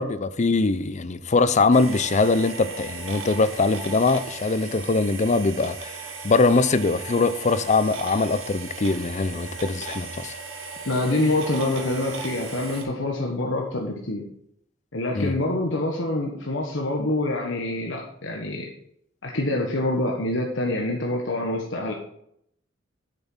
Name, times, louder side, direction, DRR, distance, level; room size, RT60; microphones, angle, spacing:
voice 1, 0.0-10.3 15.1-15.3, left 3 dB, 35° left, 14 dB, 0.6 m, -22 dB
sound 1, 1.7-12.8, right 4 dB, 80° right, 1.9 m, -37 dB
voice 2, 10.8-14.3 14.9-18.7 19.2-21.9, left 2 dB, 70° left, 0 dB, 1.5 m, -26 dB
8.2 x 6.9 x 5.9 m, 0.73 s
head